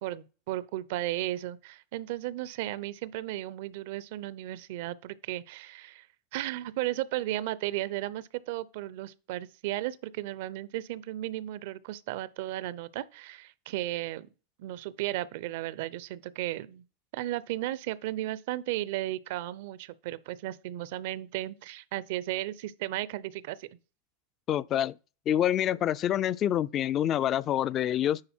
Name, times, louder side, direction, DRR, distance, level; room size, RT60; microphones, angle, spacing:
voice 1, 0.0-6.1 6.3-14.3 14.6-16.8 17.1-23.7, right 15 dB, 65° right, 0.5 m, -35 dB
voice 2, 24.5-24.9 25.3-28.2, left 11 dB, 35° left, 0.3 m, -27 dB
9.7 x 3.9 x 4.4 m
hypercardioid pair, 110°, 0 cm